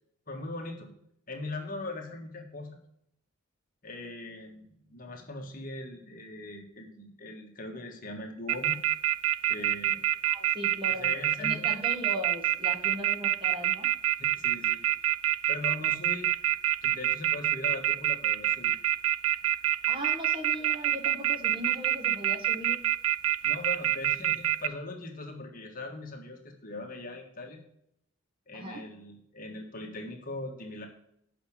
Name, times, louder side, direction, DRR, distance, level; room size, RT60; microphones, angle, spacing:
voice 1, 0.3-0.9 1.3-2.8 3.8-8.8 9.5-10.0 11.0-11.7 14.2-15.1 15.5-16.3 16.8-18.8 23.4-27.6 28.5-30.9, left 2 dB, 40° left, 1 dB, 1.5 m, -40 dB
sound 1, 8.5-24.7, right 12 dB, 85° right, 0.5 m, -26 dB
voice 2, 10.3-11.1 11.4-13.9 19.9-22.8 28.5-28.9, equal, 25° right, 2 dB, 1.5 m, -38 dB
8.1 x 6.0 x 6.7 m, 0.72 s
head